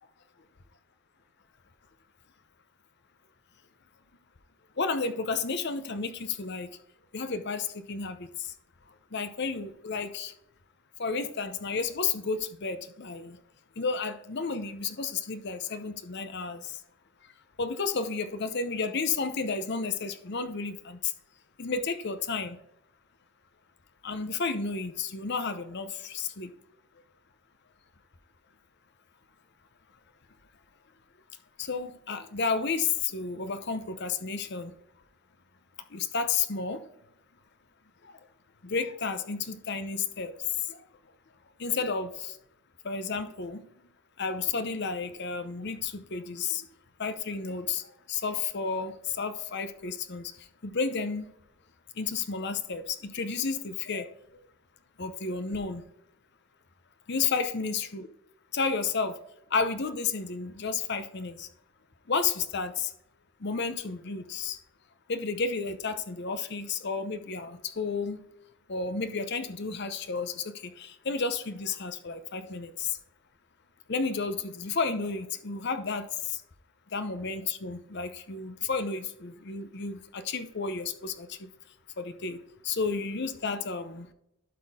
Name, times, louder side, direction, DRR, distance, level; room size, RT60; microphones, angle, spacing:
voice 1, 4.8-6.7 7.1-8.3 9.1-10.3 11.0-13.4 13.8-16.7 17.6-21.1 21.6-22.6 24.0-26.5 31.6-34.7 35.9-36.8 38.6-40.3 40.7-40.8 41.6-42.3 42.8-43.6 44.2-46.7 47.0-47.8 48.1-50.3 50.6-51.3 52.0-54.1 55.0-55.8 57.1-58.1 58.5-59.2 59.5-61.5 62.1-62.9 63.4-64.6 65.1-68.2 68.7-72.9 73.9-76.1 76.9-81.3 82.0-82.4 82.6-84.1, left 4 dB, 50° left, 10 dB, 0.8 m, -32 dB
12.0 x 4.3 x 3.6 m, 0.78 s
head